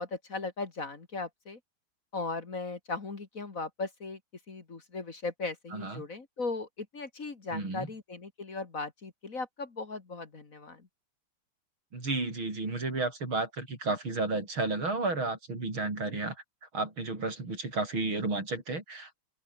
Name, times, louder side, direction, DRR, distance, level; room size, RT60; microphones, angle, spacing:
voice 1, 0.0-1.6 2.1-4.2 4.5-10.9, left 3 dB, 40° left, 2.5 m, -37 dB
voice 2, 5.7-6.0 7.5-7.9 11.9-16.4 16.7-19.1, right 3 dB, 75° right, 6.9 m, -32 dB
open air
omnidirectional pair, 2.2 m